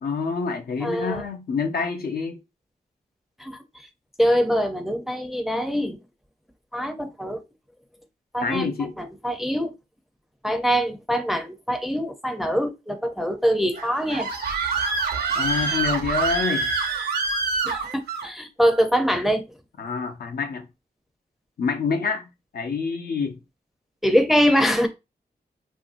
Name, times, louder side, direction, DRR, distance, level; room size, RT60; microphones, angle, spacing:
voice 1, 0.0-2.4 8.4-8.9 15.3-16.7 19.8-20.7 21.6-22.3 22.5-23.4, left 5 dB, 70° left, 0.6 m, -27 dB
voice 2, 0.8-1.2 3.4-3.6 4.2-6.0 6.7-7.4 8.3-8.7 9.0-9.7 10.4-14.3 17.6-19.4 24.0-24.9, equal, ahead, 0.5 m, -23 dB
Screaming, 13.8-18.3, right 4 dB, 80° right, 0.7 m, -26 dB
3.0 x 2.6 x 2.5 m
cardioid pair, 70°, 16 cm